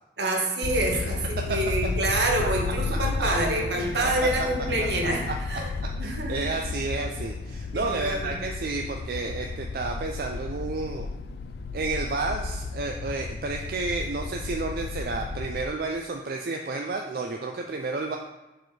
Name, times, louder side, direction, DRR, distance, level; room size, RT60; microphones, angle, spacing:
voice 1, 0.2-5.7 6.0-6.4 7.7-8.3, right 1 dB, 75° right, 0 dB, 1.4 m, -27 dB
sound 1, 0.6-15.7, left 4 dB, 65° left, 0.3 m, -33 dB
voice 2, 3.8-4.3 5.3-5.4 6.0-11.1 11.7-18.2, right 3 dB, 55° right, 2 dB, 0.4 m, -31 dB
6.8 x 4.1 x 4.7 m, 1.1 s
head